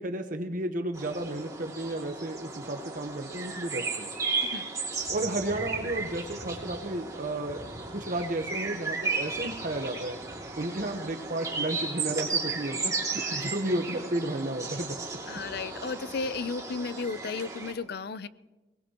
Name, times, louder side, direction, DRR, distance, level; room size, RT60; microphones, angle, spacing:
voice 1, 0.0-4.1 5.1-10.2 10.5-14.9, right 1 dB, 45° right, 6 dB, 1.0 m, -33 dB
sound 1, 0.9-17.7, right 4 dB, 20° right, 2.4 m, -35 dB
voice 2, 15.3-18.3, left 4 dB, 60° left, 16 dB, 0.5 m, -34 dB
22.0 x 19.0 x 3.0 m, 1.1 s
head